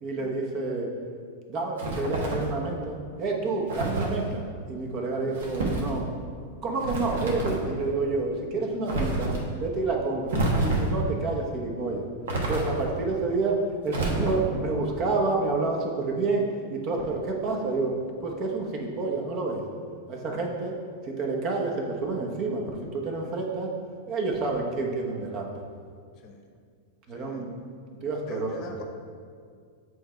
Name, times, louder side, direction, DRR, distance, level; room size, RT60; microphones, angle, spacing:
voice 1, 0.0-0.9 1.5-6.1 6.6-12.1 12.5-17.9 18.2-19.6 20.1-20.7 21.0-23.7 24.1-25.5 27.1-27.5 28.0-28.8, right 3 dB, 45° right, 1 dB, 1.0 m, -29 dB
sound 1, 1.8-2.5 3.7-4.1 5.3-5.9 6.8-7.7 8.9-9.4 10.3-11.0 12.3-13.0 13.9-14.6, right 2 dB, 70° right, 1.2 m, -28 dB
voice 2, 27.1-27.5 28.2-28.8, left 4 dB, 45° left, 3 dB, 0.8 m, -44 dB
7.8 x 3.2 x 4.5 m, 2.1 s
hypercardioid pair, 100°, 0 cm